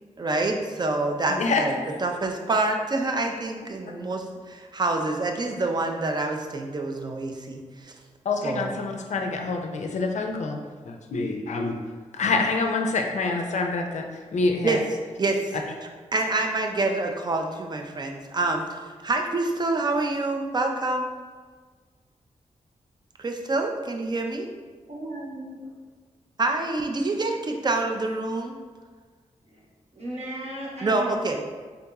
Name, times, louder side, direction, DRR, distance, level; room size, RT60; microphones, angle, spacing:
voice 1, 0.2-1.7 2.0-7.9 8.4-8.7 14.6-14.8 15.2-15.6 16.1-21.1 23.2-24.5 26.4-28.6 30.8-31.4, right 2 dB, 30° right, 3 dB, 0.4 m, -27 dB
voice 2, 1.3-1.8 8.2-10.6 10.8-11.8 12.1-14.1 14.3-14.8, left 3 dB, 65° left, 3 dB, 0.4 m, -26 dB
voice 3, 24.9-25.7 29.4-29.6 29.9-31.2, right 1 dB, 55° right, -6 dB, 1.2 m, -36 dB
3.5 x 2.9 x 2.3 m, 1.5 s
cardioid pair, 70°, 13 cm